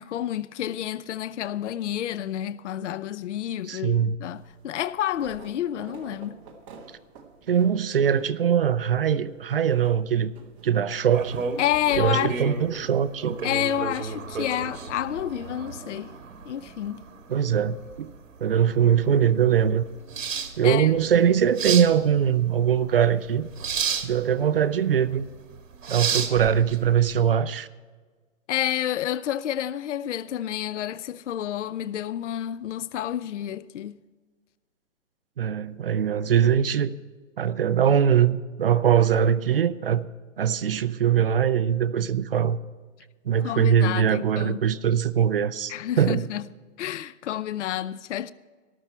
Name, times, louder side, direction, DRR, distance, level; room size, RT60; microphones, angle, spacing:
voice 1, 0.0-6.4 11.6-12.5 13.4-16.1 16.4-17.1 20.6-20.9 28.5-34.0 43.4-44.6 45.7-46.4 46.8-48.3, left 11 dB, 65° left, 0.5 m, -29 dB
voice 2, 3.6-4.2 7.5-10.3 10.6-11.4 12.0-13.4 17.3-18.1 18.4-19.8 20.6-23.5 24.0-25.2 25.9-27.7 35.4-37.0 37.4-40.1 40.4-42.6 43.3-46.3, right 8 dB, 45° right, 0.5 m, -22 dB
sound 1, 4.3-22.1, right 4 dB, 25° right, 1.5 m, -52 dB
sound 2, 11.1-27.3, right 6 dB, 75° right, 1.8 m, -33 dB
13.5 x 12.0 x 4.3 m
hypercardioid pair, 165°, 39 cm